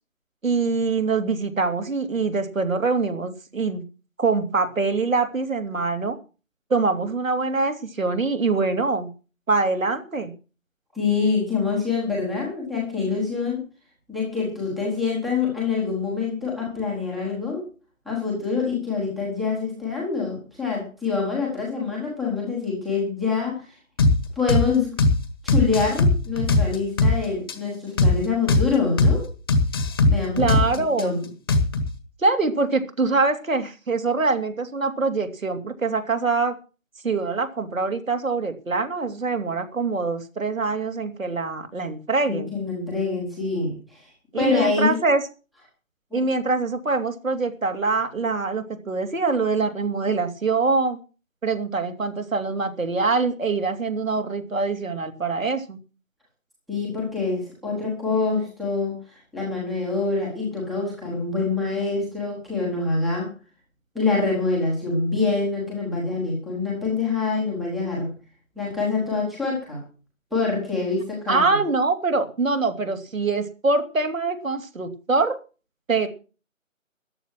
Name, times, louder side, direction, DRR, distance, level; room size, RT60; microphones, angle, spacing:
voice 1, 0.4-3.8 4.2-6.2 6.7-9.1 9.5-10.3 30.4-31.2 32.2-36.6 37.0-42.5 44.3-45.2 46.1-51.0 51.4-55.8 71.3-75.4 75.9-76.1, right 3 dB, 75° right, 6 dB, 3.0 m, -24 dB
voice 2, 10.9-13.6 14.1-17.6 18.0-23.7 24.4-24.9 25.4-29.2 30.1-30.4 30.9-31.2 42.3-44.1 44.4-44.9 46.1-46.2 56.7-63.3 63.9-68.1 68.6-69.8 70.3-71.6, left 4 dB, ahead, -3 dB, 1.1 m, -25 dB
sound 1, 24.0-24.2 24.5-24.7 25.0-25.2 25.5-27.2 27.5-27.6 28.0-28.2 28.5-28.7 29.0-29.2 29.5-31.0 31.5-31.9, left 2 dB, 15° left, 1.4 m, -19 dB
14.0 x 11.0 x 6.2 m, 0.36 s
figure-of-eight pair, 165°, 40 cm